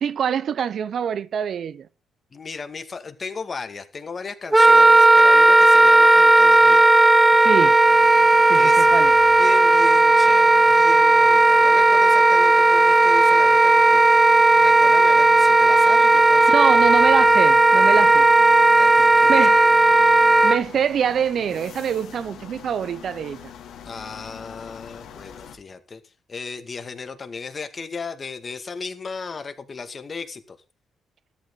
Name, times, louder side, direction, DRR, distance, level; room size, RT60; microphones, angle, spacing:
voice 1, 0.0-1.9 7.4-7.8 8.5-9.1 16.5-18.3 19.3-19.7 20.4-23.5, right 8 dB, 60° right, 0.6 m, -25 dB
voice 2, 2.3-6.9 8.5-8.9 9.4-14.2 14.5-16.9 18.8-19.4 23.9-26.0 26.3-30.6, left 4 dB, 35° left, 2.1 m, -35 dB
Wind instrument woodwind instrument, 4.5-20.6, right 2 dB, 15° right, 0.6 m, -14 dB
sound 1, 7.8-25.6, left 8 dB, 80° left, 2.4 m, -43 dB
13.5 x 12.0 x 3.9 m
cardioid pair, 90°, 0 cm